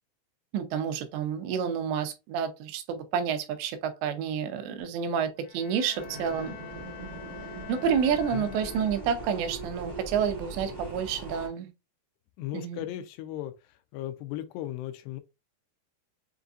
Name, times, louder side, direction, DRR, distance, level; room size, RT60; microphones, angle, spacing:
voice 1, 0.5-6.6 7.7-11.7 12.5-12.9, right 7 dB, 90° right, 3.0 m, -29 dB
Bowed string instrument, 5.4-9.4, left 8 dB, 65° left, 2.7 m, -46 dB
sound 1, 5.9-11.5, right 2 dB, 55° right, 0.4 m, -41 dB
voice 2, 12.4-13.5 13.9-15.2, left 13 dB, 85° left, 2.6 m, -36 dB
6.8 x 2.6 x 2.4 m
omnidirectional pair, 4.9 m